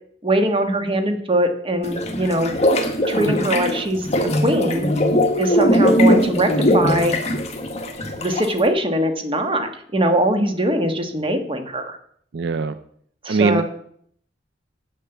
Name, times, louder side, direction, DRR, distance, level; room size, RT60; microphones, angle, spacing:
voice 1, 0.2-2.5 3.1-4.9 5.4-7.2 8.2-12.0 13.2-13.6, right 1 dB, 30° right, 6 dB, 1.4 m, -21 dB
sound 1, 1.8-8.6, equal, 40° left, 1.5 m, -20 dB
voice 2, 12.3-12.8 13.3-13.6, right 4 dB, 70° right, 12 dB, 0.5 m, -21 dB
8.7 x 6.7 x 7.1 m, 0.64 s
head